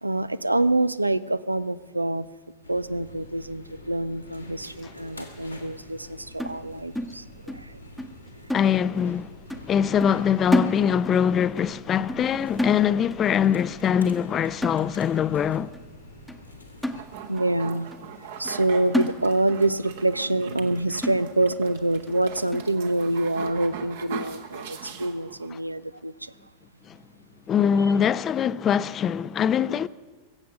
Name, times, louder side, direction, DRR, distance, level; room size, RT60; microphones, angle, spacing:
voice 1, 0.0-2.3 2.7-7.8 17.3-17.9 18.4-26.3, right 2 dB, 85° right, 0.4 m, -26 dB
sound 1, 2.6-17.0, left 1 dB, 90° left, 1.8 m, -46 dB
sound 2, 6.4-7.7 8.0-8.2 8.5-9.2 9.5-9.7 10.0-11.3 11.6-11.8 12.1-12.3 12.6-13.3 13.6-13.8 14.1-14.3 14.6-15.3 15.7-15.8 16.3-16.4 16.8-17.5 17.9-18.0 18.4-18.6 18.9-19.7 20.0-20.1 20.5-20.6 21.0-21.6 22.1-22.2 22.5-22.7, left 1 dB, ahead, 0.9 m, -30 dB
voice 2, 8.5-9.3 9.7-15.7 26.9-27.0 27.5-29.9, left 8 dB, 25° left, 0.4 m, -23 dB
sound 3, 16.9-25.5, right 7 dB, 55° right, 1.2 m, -40 dB
22.5 x 7.8 x 6.5 m
figure-of-eight pair, 90°, 0 cm